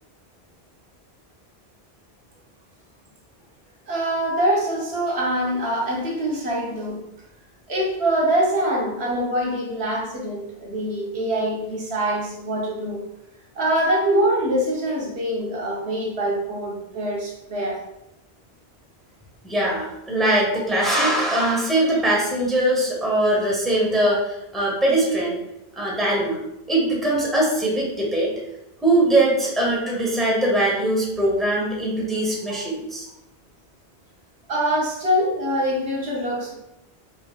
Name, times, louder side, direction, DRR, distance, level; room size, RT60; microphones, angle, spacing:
voice 1, 3.9-7.0 7.7-13.0 13.6-17.8 32.5-32.6 34.5-36.5, right 1 dB, 75° right, -2 dB, 1.2 m, -24 dB
voice 2, 19.4-25.4 25.7-26.4 26.7-28.3 28.8-33.1, right 1 dB, ahead, -3 dB, 0.9 m, -21 dB
5.0 x 3.1 x 2.4 m, 0.87 s
omnidirectional pair, 1.1 m